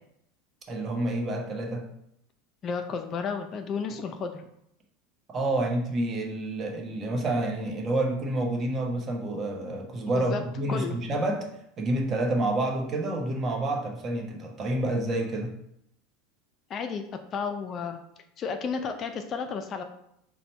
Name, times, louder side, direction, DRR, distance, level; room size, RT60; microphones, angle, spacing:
voice 1, 0.7-1.8 5.3-11.5 11.8-15.5, right 1 dB, 30° right, 1 dB, 0.9 m, -28 dB
voice 2, 2.6-4.4 10.0-10.4 10.7-11.0 16.7-17.0 17.3-18.0 18.4-19.8, left 5 dB, 40° left, 6 dB, 0.4 m, -32 dB
4.0 x 2.1 x 4.2 m, 0.75 s
hypercardioid pair, 80°, 0 cm